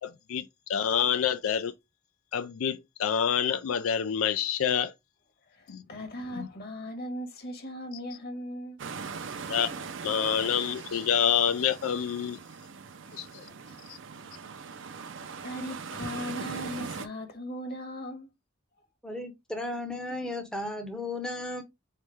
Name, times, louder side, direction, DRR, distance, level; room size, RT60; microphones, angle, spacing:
voice 1, 0.0-1.7 2.3-4.9 5.7-5.8 6.3-6.5 9.5-12.4 13.1-13.5 13.9-14.0, left 8 dB, 85° left, 0.4 m, -28 dB
voice 2, 5.5-8.8 9.1-9.2 13.1-13.4 13.7-13.8 15.1-18.3, equal, 50° left, 1.3 m, -39 dB
sound 1, 8.8-17.1, right 5 dB, 60° right, 0.6 m, -40 dB
voice 3, 19.0-21.6, left 2 dB, 5° left, 0.7 m, -35 dB
4.2 x 3.2 x 3.4 m
head